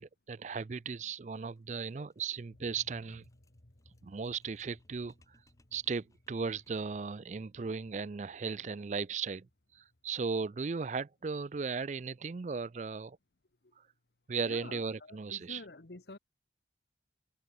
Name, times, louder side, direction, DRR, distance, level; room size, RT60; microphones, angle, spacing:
voice 1, 0.0-3.3 4.0-5.1 5.7-9.5 9.7-13.2 14.3-15.6, right 5 dB, 40° right, 0.4 m, -36 dB
sound 1, 1.3-7.0, left 1 dB, 20° left, 3.3 m, -72 dB
sound 2, 2.5-11.0, left 1 dB, 50° left, 1.8 m, -64 dB
voice 2, 14.5-16.2, left 2 dB, 70° left, 1.3 m, -48 dB
head